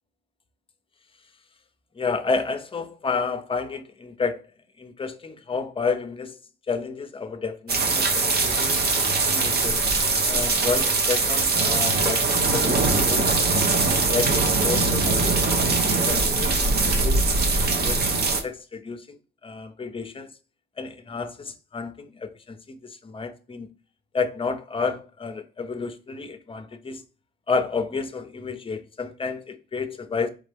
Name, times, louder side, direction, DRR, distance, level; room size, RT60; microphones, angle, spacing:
voice 1, 2.0-4.5 4.8-6.4 6.7-8.8 9.2-9.8 10.3-16.6 17.0-17.2 17.8-18.2 18.4-19.2 19.4-20.3 20.8-23.7 24.1-27.0 27.5-30.3, left 4 dB, 25° left, 0.7 m, -31 dB
sound 1, 7.7-18.4, right 3 dB, 55° right, 1.0 m, -22 dB
4.2 x 3.7 x 3.4 m
cardioid pair, 90°, 20 cm